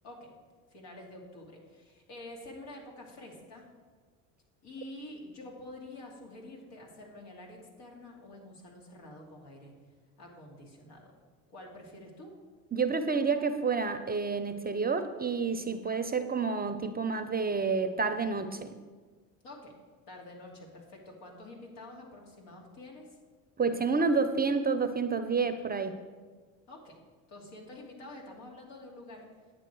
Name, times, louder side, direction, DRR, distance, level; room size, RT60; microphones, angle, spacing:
voice 1, 0.7-3.6 4.6-9.7 10.2-11.1 11.5-12.3 19.4-19.7 20.1-23.2 26.7-27.0 27.3-29.3, left 1 dB, 70° left, -1 dB, 2.8 m, -48 dB
voice 2, 12.7-18.8 23.6-26.0, right 4 dB, 20° right, 9 dB, 0.6 m, -29 dB
10.0 x 7.8 x 4.7 m, 1.5 s
hypercardioid pair, 75°, 44 cm